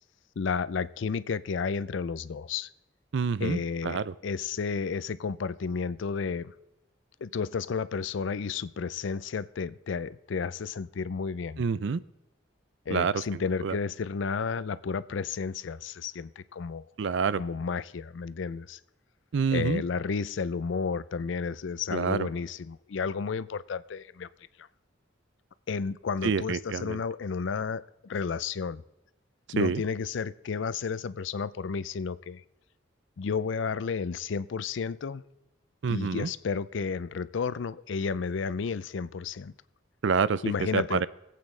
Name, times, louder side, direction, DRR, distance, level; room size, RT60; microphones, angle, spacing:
voice 1, 0.4-2.7 3.4-6.5 7.2-11.6 12.9-16.8 17.4-18.8 19.5-24.3 24.6-24.7 25.7-28.8 29.5-32.4 33.2-35.2 35.9-39.5 40.4-41.0, left 5 dB, 65° left, 0.4 m, -32 dB
voice 2, 3.1-4.1 11.6-12.0 12.9-13.2 13.6-13.8 17.0-17.4 19.3-19.8 21.9-22.3 26.2-27.0 29.6-29.8 35.8-36.3 40.0-40.4 40.7-41.1, right 5 dB, 65° right, 0.4 m, -27 dB
24.0 x 8.5 x 3.2 m
head